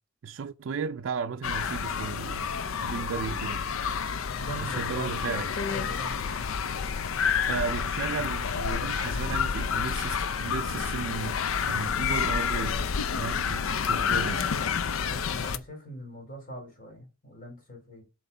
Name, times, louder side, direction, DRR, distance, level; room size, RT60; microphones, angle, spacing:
voice 1, 0.2-2.5 2.8-3.6 4.6-5.5 7.5-11.4 11.7-12.8 13.2-14.5, right 5 dB, 65° right, 0.4 m, -34 dB
sound 1, 1.4-15.6, left 6 dB, 90° left, 0.5 m, -29 dB
voice 2, 4.3-6.5 15.1-18.0, right 1 dB, 45° left, 2.8 m, -42 dB
7.9 x 3.0 x 5.3 m
head